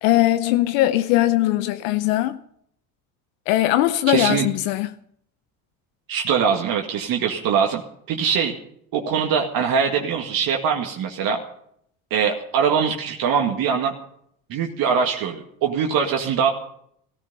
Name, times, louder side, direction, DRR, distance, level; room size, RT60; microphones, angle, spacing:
voice 1, 0.0-2.4 3.5-4.9, left 15 dB, 75° left, 0.8 m, -20 dB
voice 2, 4.1-4.4 6.1-7.8 8.1-8.5 8.9-11.4 12.1-13.9 14.5-16.5, right 7 dB, 60° right, 2.1 m, -22 dB
15.5 x 14.0 x 5.5 m
supercardioid pair, 80°, 39 cm